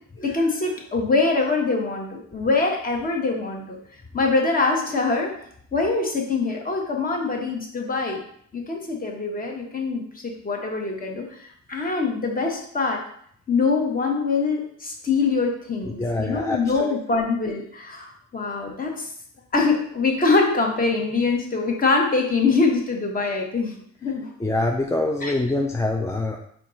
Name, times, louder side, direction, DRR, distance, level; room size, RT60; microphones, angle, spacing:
voice 1, 0.2-3.8 4.1-5.3 5.7-8.2 8.5-13.0 13.5-19.1 19.5-24.3 25.2-25.3, left 3 dB, 30° left, 1 dB, 1.0 m, -24 dB
voice 2, 16.0-16.9 24.4-26.4, left 2 dB, 10° left, 1 dB, 0.3 m, -25 dB
4.4 x 2.4 x 3.9 m, 0.65 s
cardioid pair, 90°, 30 cm